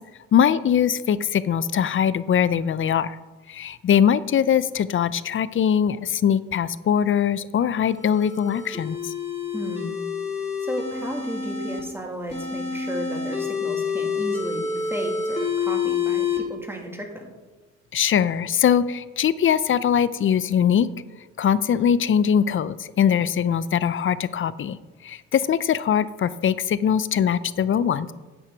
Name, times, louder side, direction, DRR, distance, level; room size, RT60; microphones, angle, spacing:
voice 1, 0.3-3.2 3.5-9.1 17.9-20.9 21.4-24.8 25.0-28.1, left 8 dB, 45° left, 17 dB, 0.5 m, -21 dB
sound 1, 7.9-11.8 12.3-16.4, left 5 dB, 20° left, 2.7 m, -28 dB
voice 2, 9.5-10.0 10.3-17.3, equal, 10° right, 2 dB, 2.1 m, -34 dB
10.0 x 7.9 x 4.5 m, 1.2 s
cardioid pair, 90°, 30 cm